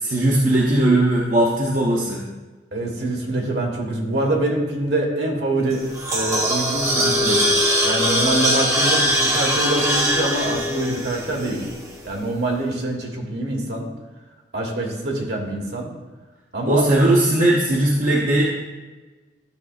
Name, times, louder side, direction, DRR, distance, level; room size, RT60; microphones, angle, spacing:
voice 1, 0.0-2.2 16.7-18.4, right 1 dB, 45° right, -4 dB, 0.9 m, -18 dB
voice 2, 2.7-5.8 6.1-11.7 12.0-13.9 14.5-15.9 16.5-16.9, right 1 dB, 65° right, 0 dB, 1.5 m, -25 dB
sound 1, 5.7-12.0, equal, 15° right, 0.9 m, -21 dB
12.5 x 6.4 x 2.5 m, 1.2 s
head